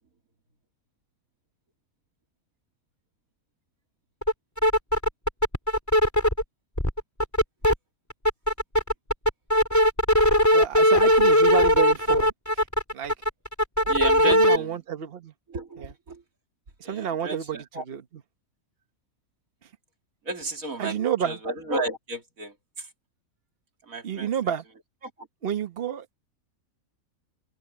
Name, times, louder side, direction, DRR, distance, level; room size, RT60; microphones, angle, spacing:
sound 1, 4.2-4.3 4.6-6.4 6.8-7.7 8.1-14.6, equal, 10° left, 3.3 m, -19 dB
voice 1, 10.5-12.6 12.9-13.1 14.2-15.3 15.8-15.9 16.9-17.6 17.9-18.0 20.8-21.4 24.0-24.6 25.4-26.2, right 8 dB, 45° right, 1.3 m, -30 dB
voice 2, 13.8-14.8 15.5-16.2 16.8-17.8 20.2-21.0 21.2-22.9 23.9-24.3 25.0-25.3, right 2 dB, 65° right, 3.1 m, -33 dB
omnidirectional pair, 1.5 m